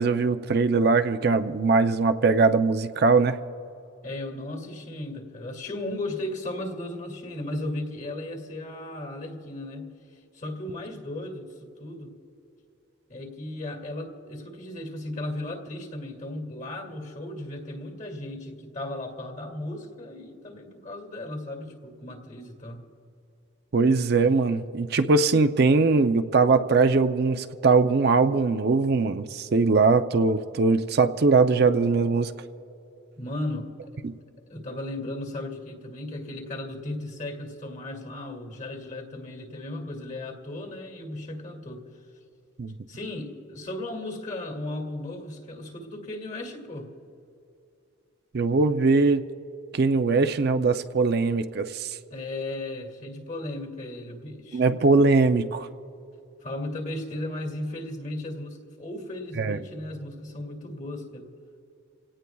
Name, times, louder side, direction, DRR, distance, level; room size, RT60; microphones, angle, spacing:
voice 1, 0.0-3.4 23.7-32.3 34.0-34.1 42.6-42.7 48.3-49.2 49.7-51.9 54.5-55.7 59.4-59.6, right 4 dB, 55° right, 9 dB, 0.5 m, -21 dB
voice 2, 4.0-9.9 10.3-12.1 13.1-22.9 33.2-34.1 34.5-41.9 42.9-46.9 52.1-54.6 56.4-61.3, left 1 dB, 40° left, 3 dB, 2.2 m, -36 dB
28.0 x 17.5 x 2.3 m, 2.7 s
head